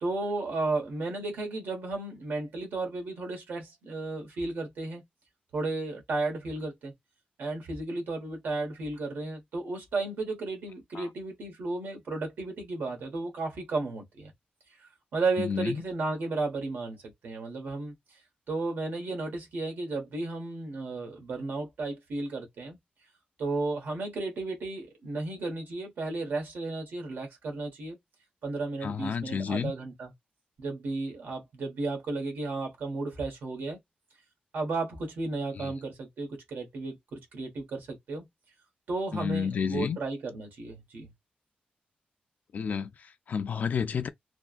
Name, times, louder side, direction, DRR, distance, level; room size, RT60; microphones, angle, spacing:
voice 1, 0.0-5.0 5.5-6.9 7.4-14.3 14.8-17.9 18.5-22.8 23.4-28.0 28.4-30.1 30.6-33.8 34.5-38.3 38.9-41.1, right 3 dB, 80° right, 1.4 m, -33 dB
voice 2, 15.4-15.8 28.8-29.7 35.5-35.7 39.1-40.0 42.5-44.1, left 6 dB, 55° left, 0.3 m, -31 dB
3.3 x 2.2 x 2.5 m
wide cardioid pair, 165°, 3 cm